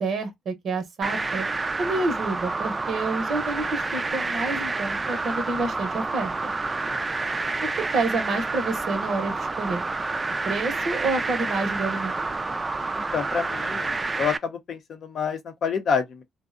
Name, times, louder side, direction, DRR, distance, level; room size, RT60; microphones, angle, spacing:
voice 1, 0.0-1.5 1.8-6.3 7.6-9.8 10.4-12.2, right 3 dB, 65° right, 0.6 m, -28 dB
sound 1, 1.0-14.4, right 3 dB, 25° right, 0.3 m, -29 dB
voice 2, 12.9-16.2, left 6 dB, 60° left, 0.6 m, -28 dB
2.6 x 2.0 x 2.3 m
cardioid pair, 90°, 0 cm